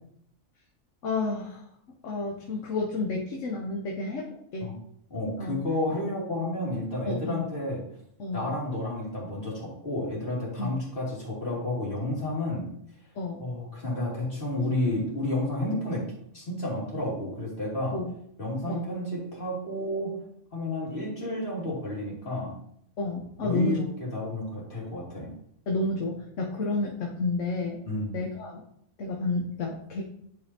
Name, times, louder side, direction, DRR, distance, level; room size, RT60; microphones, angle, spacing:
voice 1, 1.0-1.6 2.0-4.7 5.4-5.6 7.0-7.4 8.2-8.5 10.6-10.7 13.2-13.4 17.9-18.1 18.7-18.8 23.0-23.8 25.7-27.8 28.1-28.6 29.0-30.0, left 2 dB, 65° left, 0 dB, 1.3 m, -30 dB
voice 2, 5.1-7.8 8.3-12.7 13.4-16.0 16.3-18.0 18.4-20.1 20.5-22.5 23.4-25.3 27.8-28.1, left 1 dB, 40° left, -6 dB, 3.0 m, -31 dB
10.5 x 5.2 x 2.8 m, 0.71 s
omnidirectional pair, 1.4 m